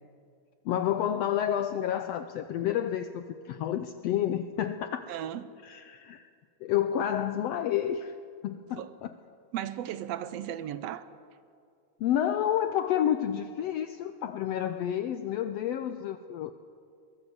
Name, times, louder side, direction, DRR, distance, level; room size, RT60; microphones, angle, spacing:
voice 1, 0.6-5.1 5.6-6.3 6.6-8.2 8.4-9.1 12.0-16.6, left 10 dB, 75° left, 1.6 m, -30 dB
voice 2, 5.1-5.5 8.8-8.9 9.5-11.1, right 11 dB, 70° right, 1.7 m, -35 dB
22.5 x 19.5 x 7.9 m
omnidirectional pair, 3.4 m